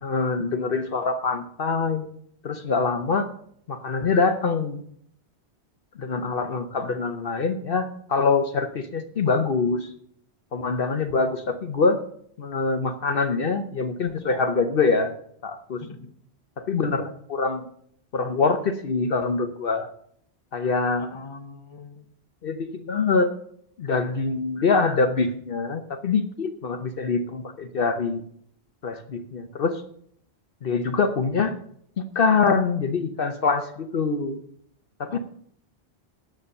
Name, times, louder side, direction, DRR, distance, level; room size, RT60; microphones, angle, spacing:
voice 1, 0.0-2.1 2.4-3.3 3.7-4.8 6.0-9.9 10.5-12.0 12.4-15.1 15.4-15.8 16.6-17.6 18.1-19.9 20.5-21.1 22.4-23.3 23.8-28.2 28.8-29.8 30.6-31.5 32.1-34.4 35.0-35.2, left 4 dB, 60° left, 8 dB, 1.0 m, -24 dB
voice 2, 15.8-16.1 21.0-22.1 35.1-35.2, left 4 dB, 30° left, 6 dB, 0.9 m, -42 dB
9.7 x 6.9 x 6.6 m, 0.65 s
omnidirectional pair, 1.1 m